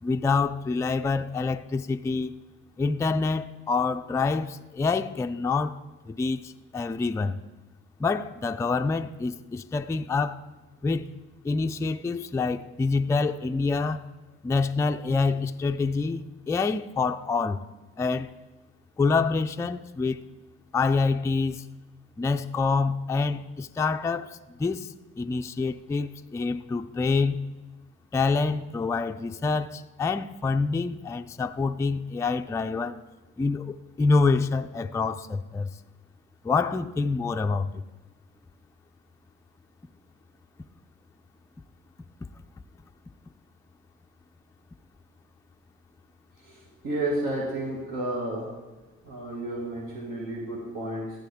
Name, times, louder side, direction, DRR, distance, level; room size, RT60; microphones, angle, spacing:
voice 1, 0.0-2.3 2.8-5.8 6.1-7.3 8.0-10.4 10.8-11.1 11.4-14.1 14.4-17.6 18.0-18.3 19.0-20.2 20.7-21.6 22.2-27.5 28.1-33.0 33.4-35.7 36.4-37.8, left 4 dB, 10° left, 0.3 m, -26 dB
voice 2, 46.8-48.5 49.1-51.1, right 1 dB, 80° right, 2.3 m, -31 dB
14.0 x 7.6 x 3.6 m
cardioid pair, 90°, 30 cm